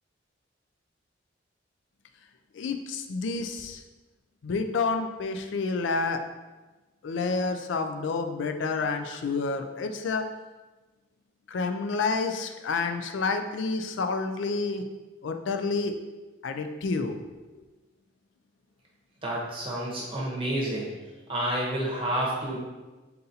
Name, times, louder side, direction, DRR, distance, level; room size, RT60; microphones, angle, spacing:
voice 1, 2.5-3.8 4.4-6.2 7.0-10.2 11.5-14.8 15.2-15.9 16.4-17.2, left 4 dB, 80° left, 7 dB, 0.4 m, -29 dB
voice 2, 19.2-20.9 21.3-22.6, right 1 dB, 30° right, -4 dB, 0.9 m, -29 dB
4.0 x 3.9 x 2.7 m, 1.2 s
head